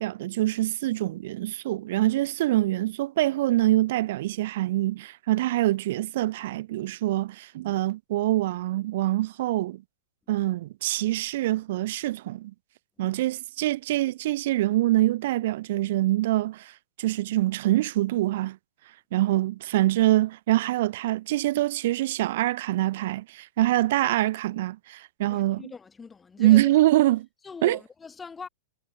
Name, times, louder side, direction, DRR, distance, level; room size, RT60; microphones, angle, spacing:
voice 1, 0.0-9.8 10.3-12.5 13.0-18.6 19.1-25.6 26.4-27.3 27.6-27.8, right 16 dB, 50° right, 0.7 m, -25 dB
voice 2, 25.3-26.7 27.4-28.5, left 5 dB, 10° left, 1.1 m, -42 dB
supercardioid pair, 165°, 0 cm